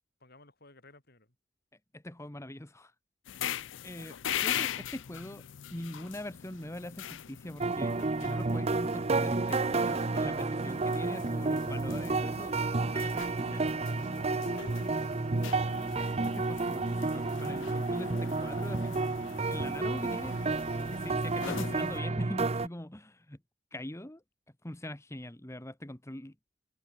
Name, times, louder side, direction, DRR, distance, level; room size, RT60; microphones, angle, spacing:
voice 1, 0.2-1.4 15.5-16.3 17.0-17.8 19.9-20.3, left 3 dB, 55° left, 6.0 m, -57 dB
voice 2, 1.9-2.9 3.8-5.4 5.7-12.5 12.8-13.6 16.3-19.1 19.5-20.3 20.9-23.4 23.7-24.2 24.6-26.3, left 1 dB, 15° left, 1.3 m, -42 dB
sound 1, 3.2-22.0, left 9 dB, 75° left, 0.5 m, -42 dB
sound 2, 7.6-22.7, right 3 dB, 35° right, 0.7 m, -31 dB
head